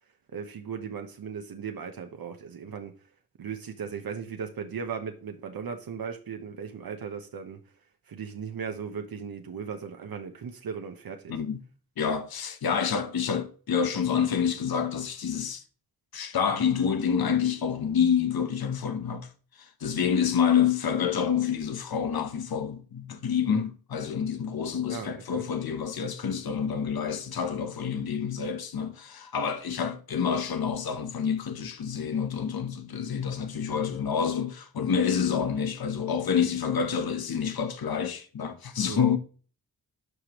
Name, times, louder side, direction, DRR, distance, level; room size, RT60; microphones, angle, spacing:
voice 1, 0.3-2.9 3.4-7.6 8.1-11.4 23.5-23.6 24.9-25.4 38.9-39.0, right 6 dB, 75° right, 1.0 m, -37 dB
voice 2, 12.0-15.6 16.1-19.3 19.6-39.2, left 7 dB, 85° left, 1.0 m, -28 dB
11.5 x 5.0 x 3.0 m
wide cardioid pair, 90°, 36 cm